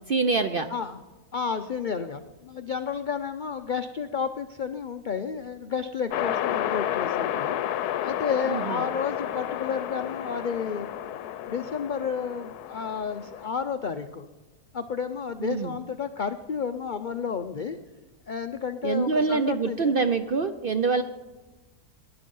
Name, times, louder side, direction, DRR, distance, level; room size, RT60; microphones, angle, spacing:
voice 1, 0.1-0.7 8.5-8.8 15.4-15.7 18.8-21.0, right 4 dB, 55° right, 8 dB, 0.6 m, -25 dB
voice 2, 0.7-1.0 1.3-10.9 11.5-14.3 14.7-17.8 18.3-20.0, left 6 dB, 70° left, 8 dB, 0.4 m, -31 dB
sound 1, 6.1-13.5, left 11 dB, 85° left, 1.2 m, -31 dB
19.5 x 11.0 x 5.4 m, 1.2 s
omnidirectional pair, 1.6 m